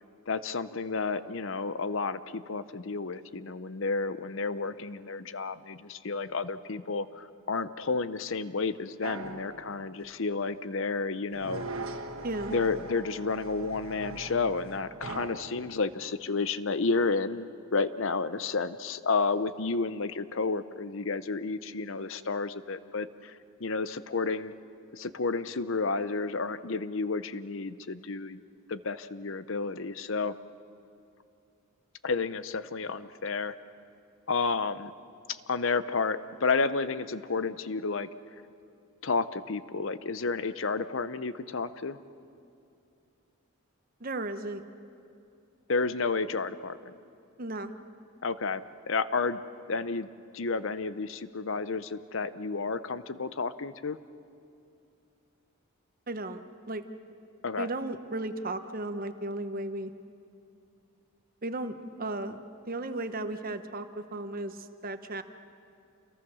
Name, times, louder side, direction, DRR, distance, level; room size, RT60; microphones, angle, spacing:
voice 1, 0.3-11.7 12.5-23.3 23.6-24.5 24.9-28.4 28.7-30.3 32.0-33.5 34.3-34.9 35.3-38.1 39.0-42.0 45.7-46.9 48.2-49.4 49.7-50.1 50.3-54.0 57.4-57.7, left 4 dB, 60° left, 14 dB, 0.7 m, -31 dB
sound 1, 9.0-10.3 11.3-15.7, right 2 dB, 70° right, 1.6 m, -41 dB
voice 2, 12.2-12.5 44.0-44.6 47.4-47.7 56.1-56.8 57.6-59.9 61.4-62.4 62.7-65.2, right 2 dB, 40° right, 9 dB, 1.0 m, -35 dB
28.5 x 22.0 x 6.3 m, 2.6 s
head